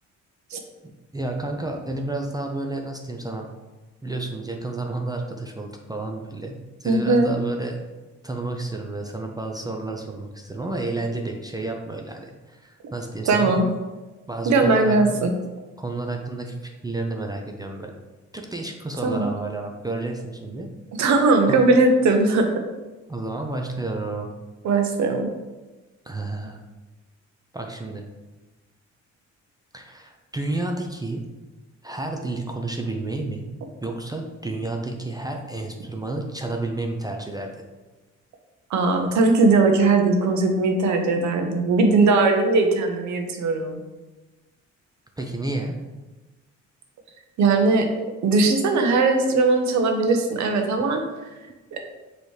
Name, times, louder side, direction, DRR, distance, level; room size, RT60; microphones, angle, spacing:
voice 1, 1.1-3.5 4.0-6.5 6.8-7.8 8.2-13.5 14.3-15.2 15.8-17.9 18.3-20.7 21.4-21.7 23.1-24.3 26.0-26.6 27.5-28.0 29.7-31.2 31.8-33.4 33.8-37.6 45.2-45.8, right 2 dB, 15° right, 2 dB, 0.5 m, -31 dB
voice 2, 6.8-7.3 13.2-13.7 14.5-15.3 19.0-19.3 21.0-22.5 24.6-25.3 38.7-43.8 47.4-47.9 48.2-51.0 51.7-51.8, right 3 dB, 70° right, 4 dB, 0.8 m, -19 dB
5.3 x 3.1 x 3.2 m, 1.2 s
cardioid pair, 90°, 30 cm